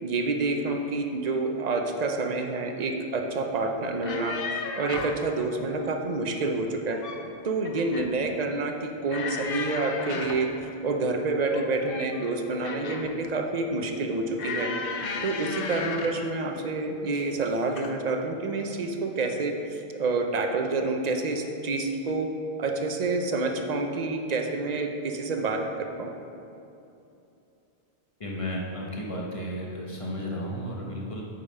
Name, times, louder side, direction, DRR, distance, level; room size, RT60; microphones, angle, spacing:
voice 1, 0.0-4.4 4.8-7.0 7.4-10.5 10.8-14.7 15.2-22.3 22.6-26.1, right 3 dB, 45° right, 4 dB, 0.8 m, -28 dB
sound 1, 3.9-5.2 6.7-7.3 7.6-8.2 9.1-10.5 11.5-13.2 14.4-16.2 17.1-17.4 17.8-18.0, left 4 dB, 65° left, 0.8 m, -34 dB
voice 2, 28.2-31.2, equal, 30° left, -3 dB, 1.3 m, -33 dB
8.6 x 5.3 x 5.4 m, 2.7 s
omnidirectional pair, 1.1 m